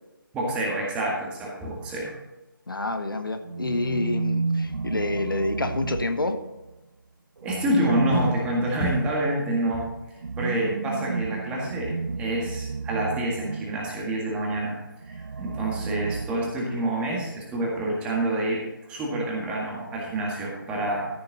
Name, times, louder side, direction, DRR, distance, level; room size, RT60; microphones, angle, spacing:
voice 1, 0.3-2.1 7.4-9.9 10.4-14.8 15.0-18.6 18.9-21.1, right 1 dB, 10° right, -3 dB, 1.8 m, -27 dB
voice 2, 2.7-6.4, left 2 dB, 70° left, 8 dB, 1.0 m, -28 dB
sound 1, 3.4-6.7 7.4-14.0 15.0-16.9, right 4 dB, 65° right, 0.4 m, -32 dB
14.0 x 6.8 x 4.1 m, 1.0 s
figure-of-eight pair, 150°, 12 cm